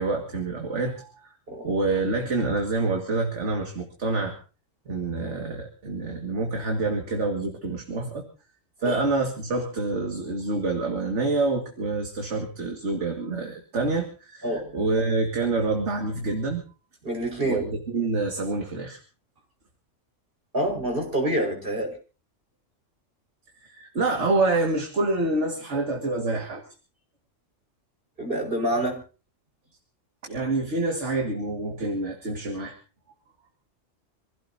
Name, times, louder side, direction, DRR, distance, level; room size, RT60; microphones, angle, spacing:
voice 1, 0.0-1.3 1.6-4.4 4.9-8.3 8.8-16.6 17.4-19.0 23.6-26.6 30.2-32.8, right 3 dB, 65° right, 2 dB, 2.3 m, -27 dB
voice 2, 17.0-17.6 20.5-21.9 28.2-29.0, right 1 dB, 45° right, 1 dB, 5.6 m, -26 dB
27.0 x 16.5 x 2.8 m, 0.34 s
omnidirectional pair, 1.3 m